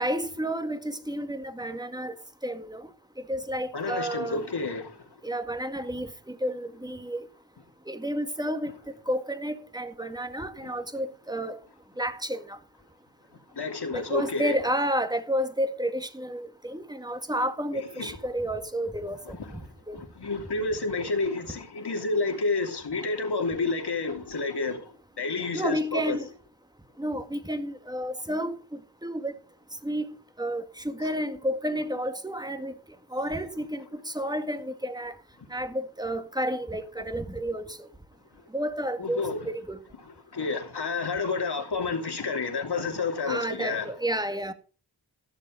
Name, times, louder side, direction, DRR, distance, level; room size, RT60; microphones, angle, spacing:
voice 1, 0.0-2.1 2.4-2.8 3.3-4.4 5.2-7.2 7.9-8.7 9.1-11.6 12.0-12.6 13.9-19.4 19.9-20.0 25.5-26.3 27.0-28.6 29.0-29.3 29.8-30.1 30.4-32.7 33.1-35.1 35.5-37.6 38.5-39.8 43.3-44.5, right 1 dB, 10° right, 2.0 m, -31 dB
voice 2, 3.7-5.0 10.6-10.7 13.5-14.6 17.7-18.1 19.2-19.6 19.9-24.8 25.2-26.2 39.0-39.5 40.0-43.9, left 3 dB, 65° left, 3.0 m, -30 dB
16.0 x 6.8 x 5.1 m
cardioid pair, 50°, 43 cm